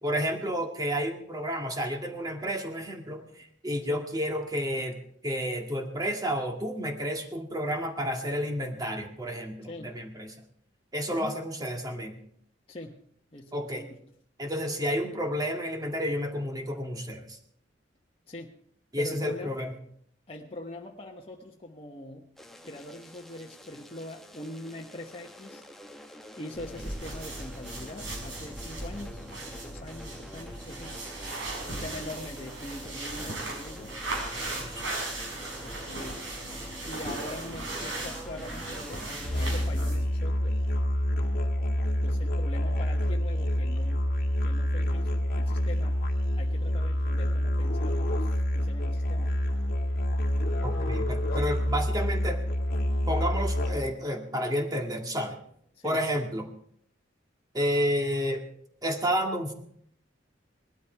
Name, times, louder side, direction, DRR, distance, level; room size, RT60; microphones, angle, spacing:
voice 1, 0.0-5.0 5.2-10.3 10.9-12.2 13.5-13.9 14.4-17.4 18.9-19.7 50.6-52.4 53.1-55.4 55.8-56.5 57.5-58.4 58.8-59.5, equal, 20° right, 3 dB, 2.0 m, -30 dB
voice 2, 9.6-10.0 11.1-11.3 12.7-13.0 13.3-14.0 18.3-18.6 19.0-19.6 20.3-22.3 22.6-25.6 26.4-31.0 31.6-34.0 35.6-36.3 36.8-40.6 42.0-44.1 44.4-49.4 55.7-56.1, left 1 dB, 30° left, -1 dB, 1.1 m, -43 dB
sound 1, 22.4-39.4, left 1 dB, ahead, 1.1 m, -48 dB
fast fabric rustle, 26.5-40.1, right 2 dB, 75° right, 5.9 m, -37 dB
Musical instrument, 39.2-54.0, left 1 dB, 50° left, 1.7 m, -27 dB
19.5 x 12.5 x 4.6 m, 0.67 s
head